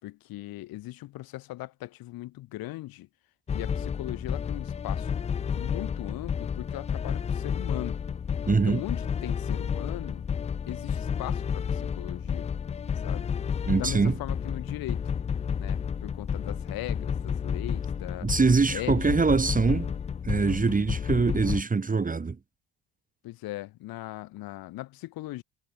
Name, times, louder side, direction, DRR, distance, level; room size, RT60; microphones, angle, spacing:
voice 1, 0.0-3.1 3.5-5.2 5.5-8.0 8.5-10.2 10.7-12.5 13.0-13.3 13.8-15.0 15.6-18.3 18.7-19.1 23.2-25.4, left 17 dB, 55° left, 4.7 m, -39 dB
sound 1, 3.5-21.6, left 7 dB, 15° left, 0.4 m, -31 dB
voice 2, 8.5-8.8 13.7-14.1 18.2-19.9 20.2-22.4, right 4 dB, 20° right, 2.1 m, -23 dB
figure-of-eight pair, 55°, 41 cm